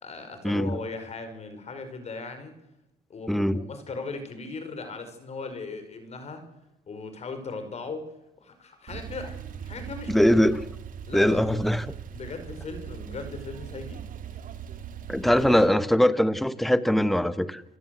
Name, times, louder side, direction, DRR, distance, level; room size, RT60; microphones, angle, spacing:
voice 1, 0.0-2.5 3.1-6.4 6.9-8.1 8.4-10.6 11.1-11.5 12.1-14.0 15.2-15.6, left 3 dB, 40° left, 8 dB, 5.5 m, -38 dB
voice 2, 3.3-3.6 10.1-10.6 11.1-11.9 15.1-17.6, equal, ahead, 13 dB, 1.2 m, -22 dB
Male speech man speaking / Car / Idling, 8.9-15.7, right 8 dB, 55° right, 2.3 m, -40 dB
29.0 x 17.5 x 7.9 m, 0.93 s
cardioid pair, 110°, 17 cm